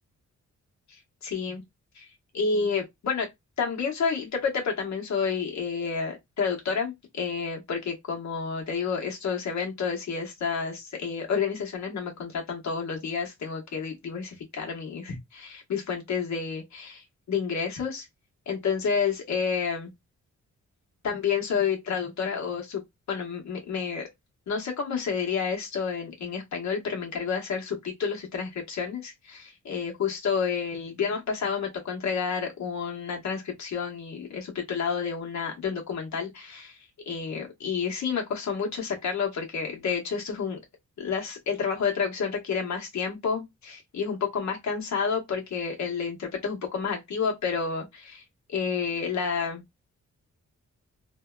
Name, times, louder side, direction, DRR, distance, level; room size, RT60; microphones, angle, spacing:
voice 1, 1.2-1.6 1.9-2.1 2.3-3.3 3.6-18.1 18.5-19.9 21.0-22.8 23.1-24.1 24.5-36.8 37.1-40.6 41.0-48.2 48.5-49.6, left 6 dB, 70° left, 1.0 m, -30 dB
2.7 x 2.2 x 2.3 m
wide cardioid pair, 105°, 30 cm